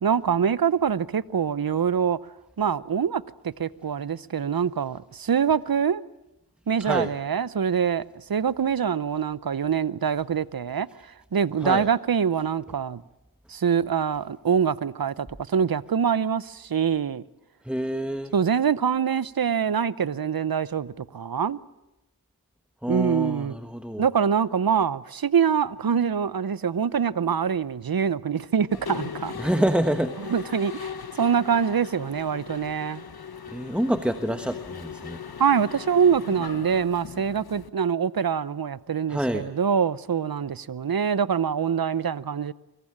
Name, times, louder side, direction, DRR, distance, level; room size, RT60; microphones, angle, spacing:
voice 1, 0.0-2.2 2.6-6.0 6.7-10.9 11.3-13.0 13.5-17.2 18.3-21.6 22.9-23.6 24.0-29.3 30.3-33.0 35.4-42.5, right 7 dB, 60° right, 0.8 m, -24 dB
voice 2, 6.8-7.1 11.6-11.9 17.6-18.3 22.8-24.0 29.4-30.6 33.5-35.2 39.1-39.5, right 1 dB, 5° right, 1.3 m, -27 dB
Mechanisms, 28.7-37.7, left 6 dB, 65° left, 1.3 m, -39 dB
24.5 x 22.0 x 8.8 m
wide cardioid pair, 45°, 39 cm